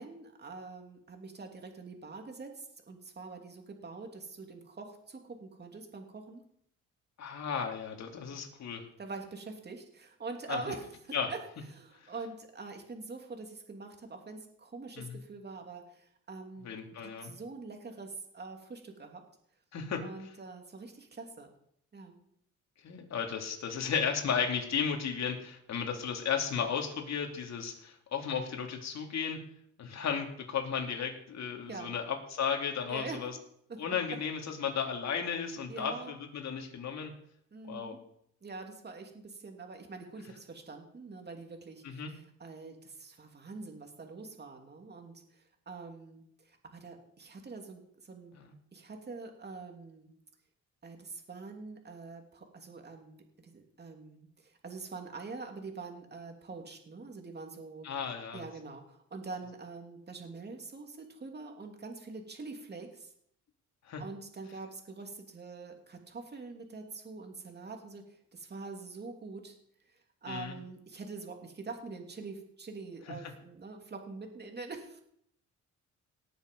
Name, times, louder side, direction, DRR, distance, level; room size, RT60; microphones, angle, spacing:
voice 1, 0.0-6.4 9.0-10.9 11.3-11.4 11.7-16.7 17.0-19.2 20.0-21.5 21.9-22.2 31.7-31.9 32.9-33.2 33.7-33.8 35.7-36.1 37.5-38.0 38.4-48.3 48.7-50.1 50.8-53.2 53.4-57.9 58.3-63.1 64.0-69.6 69.9-75.0, right 3 dB, 35° right, 3 dB, 2.8 m, -45 dB
voice 2, 7.2-8.8 10.5-10.6 11.1-11.3 12.0-12.1 15.0-15.2 16.6-17.3 19.7-20.0 22.8-29.4 29.8-33.3 33.8-37.1 37.7-38.0 41.8-42.1 48.3-48.5 57.8-58.4 63.9-64.0 70.3-70.5, left 7 dB, 60° left, 3 dB, 2.7 m, -34 dB
18.5 x 7.1 x 5.3 m, 0.70 s
cardioid pair, 90°, 30 cm